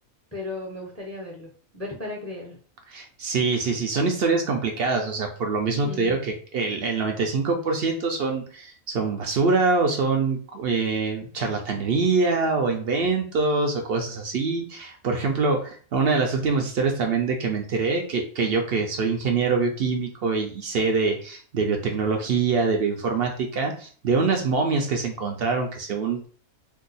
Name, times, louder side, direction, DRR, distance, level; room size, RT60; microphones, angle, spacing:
voice 1, 0.3-2.6 5.7-6.2, left 2 dB, 20° left, -1 dB, 0.4 m, -36 dB
voice 2, 2.9-26.3, right 4 dB, 60° right, 3 dB, 0.6 m, -24 dB
2.7 x 2.2 x 3.9 m, 0.43 s
omnidirectional pair, 1.5 m